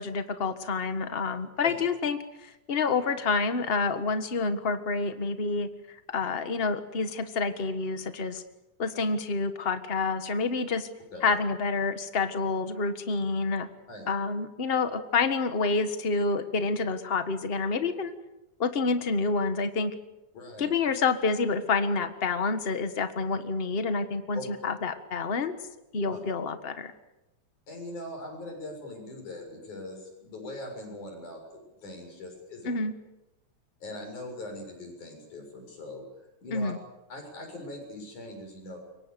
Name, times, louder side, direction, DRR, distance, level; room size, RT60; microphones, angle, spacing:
voice 1, 0.0-5.7 6.1-8.4 8.8-10.9 11.2-13.7 14.1-18.1 18.6-19.9 20.6-25.5 25.9-26.9 32.6-32.9 36.5-36.8, left 4 dB, 30° left, 9 dB, 1.0 m, -28 dB
voice 2, 20.3-20.7 24.3-24.5 26.1-26.2 27.7-32.8 33.8-36.0 36.4-36.7 37.1-38.8, left 1 dB, 85° left, 2 dB, 8.3 m, -41 dB
27.5 x 23.5 x 6.9 m, 0.97 s
omnidirectional pair, 3.4 m